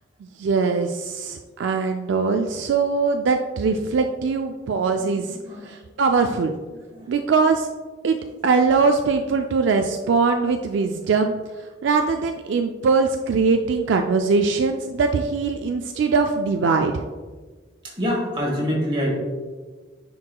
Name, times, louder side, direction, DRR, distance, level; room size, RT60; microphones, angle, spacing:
voice 1, 0.4-5.4 5.6-6.5 7.1-7.7 8.0-8.2 8.4-11.4 11.8-17.0, right 4 dB, 65° right, 5 dB, 0.3 m, -21 dB
voice 2, 4.9-5.8 6.7-7.1 8.7-8.8 17.8-19.2, equal, 25° right, -2 dB, 1.6 m, -27 dB
9.6 x 4.7 x 2.3 m, 1.4 s
head